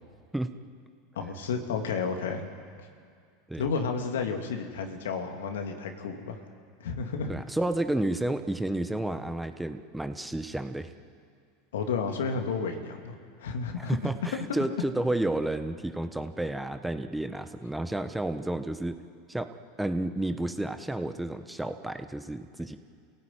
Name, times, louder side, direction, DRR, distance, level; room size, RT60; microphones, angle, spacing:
voice 1, 1.2-2.5 3.6-6.4 6.8-7.3 11.7-14.0 14.3-14.8, left 5 dB, 80° left, 5 dB, 2.5 m, -32 dB
voice 2, 7.3-10.9 13.8-19.0 19.3-19.5 19.8-22.8, right 1 dB, 5° right, 9 dB, 1.2 m, -31 dB
27.0 x 17.0 x 9.1 m, 2.2 s
hypercardioid pair, 90°, 0 cm